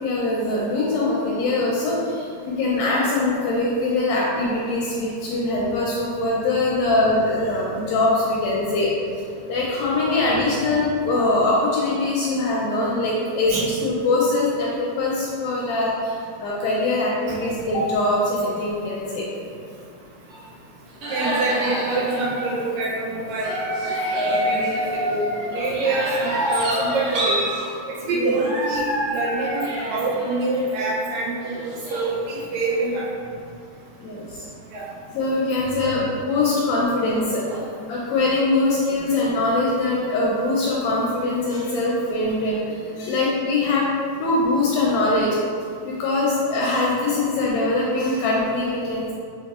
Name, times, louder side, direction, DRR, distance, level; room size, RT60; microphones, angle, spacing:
voice 1, 0.0-8.9 9.5-19.3 28.1-28.3 34.0-34.4 35.1-43.9 44.2-45.4 45.8-49.1, left 2 dB, 80° left, -5 dB, 1.7 m, -22 dB
sound 1, 20.3-20.4 21.0-22.7 23.3-27.7 28.3-31.2 31.5-32.8, equal, 60° right, 1.6 m, -27 dB
voice 2, 21.1-23.9 24.1-25.2 25.5-27.4 28.1-28.9 29.1-33.1 34.7-34.9, right 2 dB, 80° right, -4 dB, 1.8 m, -25 dB
6.2 x 3.0 x 2.3 m, 2.3 s
omnidirectional pair, 3.5 m